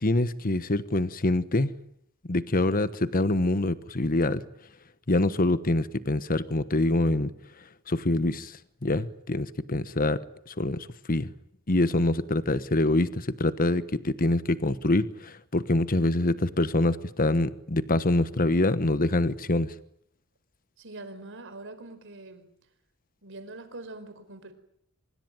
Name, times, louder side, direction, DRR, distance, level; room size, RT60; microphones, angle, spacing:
voice 1, 0.0-1.7 2.3-4.4 5.1-7.3 7.9-8.5 8.8-10.2 10.5-11.3 11.7-19.7, left 2 dB, 40° left, 13 dB, 1.2 m, -25 dB
voice 2, 20.8-22.5 23.2-24.5, right 2 dB, 60° right, 10 dB, 4.6 m, -43 dB
25.0 x 23.0 x 9.2 m, 0.71 s
head